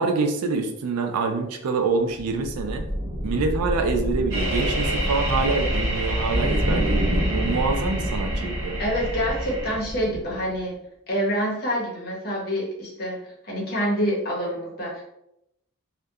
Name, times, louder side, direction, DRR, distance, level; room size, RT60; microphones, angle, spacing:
voice 1, 0.0-2.9 3.2-8.8, right 4 dB, 90° right, 5 dB, 0.4 m, -26 dB
sound 1, 2.2-10.6, equal, 5° right, 1.4 m, -27 dB
sound 2, 4.3-9.7, right 1 dB, 60° right, 1.0 m, -31 dB
voice 2, 8.8-10.7 11.1-15.0, equal, 45° left, -3 dB, 0.8 m, -27 dB
2.7 x 2.1 x 2.3 m, 0.80 s
head